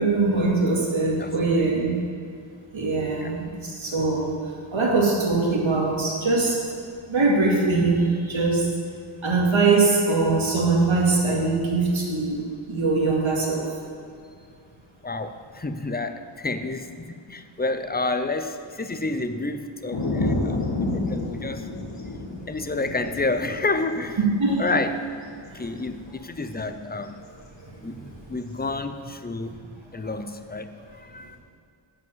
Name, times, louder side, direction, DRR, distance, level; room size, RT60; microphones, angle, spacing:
voice 1, 0.0-2.1 2.7-4.3 4.7-6.6 7.1-8.7 9.2-13.7 24.2-24.6 28.0-28.1, right 3 dB, 70° right, -3 dB, 2.3 m, -22 dB
voice 2, 1.2-1.7 3.2-3.3 15.0-21.7 22.5-24.2 24.6-25.1 25.5-27.2 27.8-31.4, left 3 dB, 20° left, 9 dB, 0.5 m, -30 dB
sound 1, 19.9-26.7 27.0-27.1 28.3-28.7, left 2 dB, 55° left, 1.8 m, -30 dB
11.0 x 5.2 x 8.0 m, 2.4 s
wide cardioid pair, 85°, 50 cm